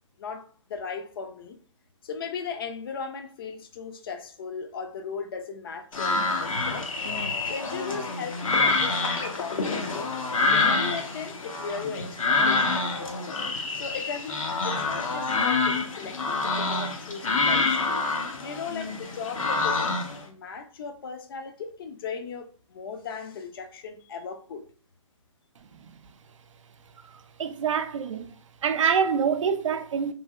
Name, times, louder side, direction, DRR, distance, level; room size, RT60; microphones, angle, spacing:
voice 1, 0.2-1.6 2.0-6.9 7.5-10.1 10.5-13.4 13.7-18.0 18.4-19.9 20.2-24.7, left 5 dB, 45° left, 0.4 m, -37 dB
sound 1, 5.9-20.2, left 3 dB, 80° left, 0.7 m, -27 dB
voice 2, 27.4-28.3 28.6-30.1, right 7 dB, 70° right, 0.4 m, -25 dB
3.1 x 2.6 x 2.3 m
hypercardioid pair, 145°, 17 cm